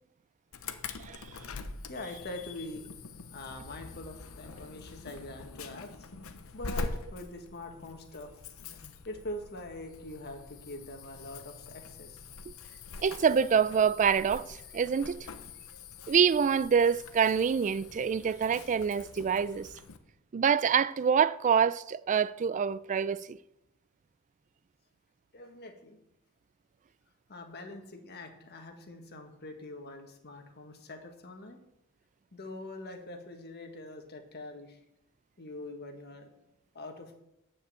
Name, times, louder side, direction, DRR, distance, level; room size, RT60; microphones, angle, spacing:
Insect / Alarm, 0.5-20.0, left 4 dB, 70° left, 0.8 m, -44 dB
voice 1, 1.9-2.9 3.3-6.1 6.5-8.3 9.0-12.2 25.3-26.0 27.3-31.6 32.3-34.8 35.4-36.3 36.7-37.2, left 1 dB, 50° left, 1.5 m, -43 dB
voice 2, 13.0-15.3 16.1-19.7 20.3-23.4, right 7 dB, 35° right, 0.3 m, -26 dB
9.6 x 5.2 x 7.5 m
head